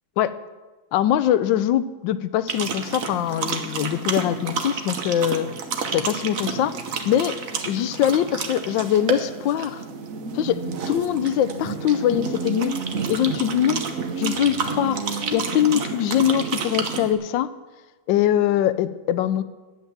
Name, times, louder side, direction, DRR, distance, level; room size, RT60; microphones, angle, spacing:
voice 1, 0.9-5.5 5.9-6.7 7.0-7.4 7.6-9.8 10.3-12.8 13.1-13.8 14.2-15.0 15.3-17.5 18.1-19.4, left 11 dB, 80° left, 14 dB, 1.3 m, -22 dB
sound 1, 2.5-17.1, right 5 dB, 50° right, 1.2 m, -30 dB
10.5 x 9.0 x 7.2 m, 1.2 s
omnidirectional pair, 2.1 m